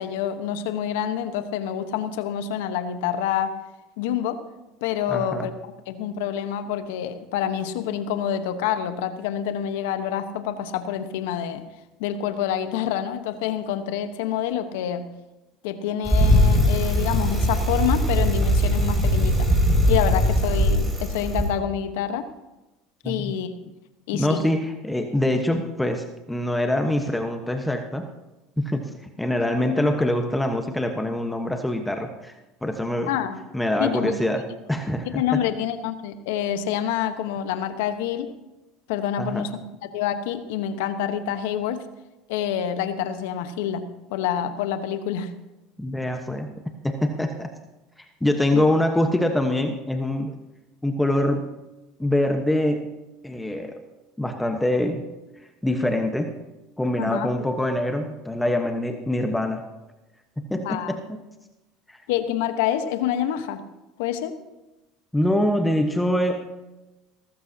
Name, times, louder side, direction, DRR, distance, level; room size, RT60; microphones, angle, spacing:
voice 1, 0.0-3.5 4.0-4.4 4.8-5.5 5.9-11.6 12.0-15.1 15.6-19.5 19.9-22.3 23.0-23.5 24.1-24.4 33.1-33.4 33.8-34.1 35.1-38.3 38.9-39.5 39.8-41.8 42.3-43.8 44.1-45.3 48.5-48.7 57.0-57.3 60.6-61.0 62.1-63.6 64.0-64.3, left 9 dB, 80° left, 10 dB, 1.1 m, -27 dB
voice 2, 5.1-5.5 23.0-23.3 24.1-28.1 28.6-28.8 29.2-32.3 32.6-33.1 33.5-34.4 34.7-35.4 39.2-39.4 45.8-46.5 46.8-47.5 48.0-50.3 50.8-51.5 52.0-52.9 53.2-53.8 54.2-55.1 55.6-56.3 56.8-59.6 60.4-61.2 61.9-62.0 65.1-66.5, left 1 dB, 5° left, 5 dB, 1.2 m, -24 dB
Bicycle, 16.0-21.5, equal, 15° right, 5.6 m, -20 dB
18.0 x 14.5 x 2.9 m, 1.0 s
supercardioid pair, 100°, 0 cm